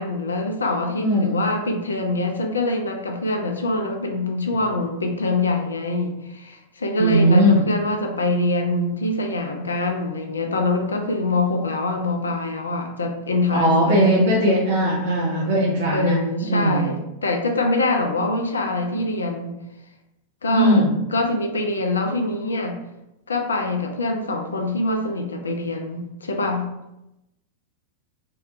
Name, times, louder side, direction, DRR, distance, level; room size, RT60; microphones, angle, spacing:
voice 1, 0.0-14.2 15.9-19.5 20.4-20.8 21.1-22.8 23.3-26.7, left 2 dB, 75° left, 4 dB, 0.3 m, -24 dB
voice 2, 1.0-1.4 7.0-7.6 13.5-16.9 20.5-20.9, equal, 60° right, -6 dB, 0.5 m, -19 dB
2.7 x 2.1 x 2.4 m, 0.91 s
figure-of-eight pair, 90°, 0 cm